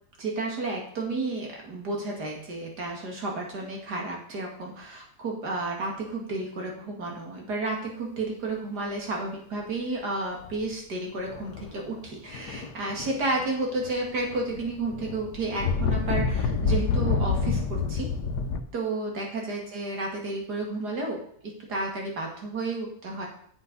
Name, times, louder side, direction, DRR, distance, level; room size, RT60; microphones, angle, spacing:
voice 1, 0.2-18.1 18.7-23.3, right 2 dB, 70° right, 0 dB, 2.8 m, -32 dB
sound 1, 10.4-10.7 11.3-11.8 12.3-13.5 13.8-18.6, left 5 dB, 70° left, 1.4 m, -28 dB
8.2 x 6.7 x 5.5 m, 0.64 s
omnidirectional pair, 1.8 m